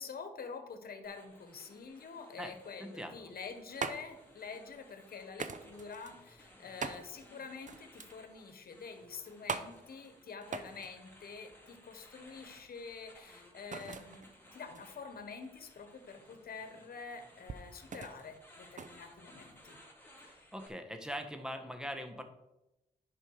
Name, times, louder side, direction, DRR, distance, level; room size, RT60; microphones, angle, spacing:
voice 1, 0.0-19.8 20.2-20.3, left 5 dB, 75° left, 7 dB, 1.3 m, -47 dB
sound 1, 1.0-20.7, left 1 dB, 15° left, 2.7 m, -60 dB
voice 2, 2.8-3.2 20.2-22.2, equal, 5° right, 6 dB, 1.4 m, -42 dB
sound 2, 3.3-19.8, right 5 dB, 55° right, 0.7 m, -45 dB
10.0 x 5.7 x 4.8 m, 0.96 s
cardioid pair, 65°, 16 cm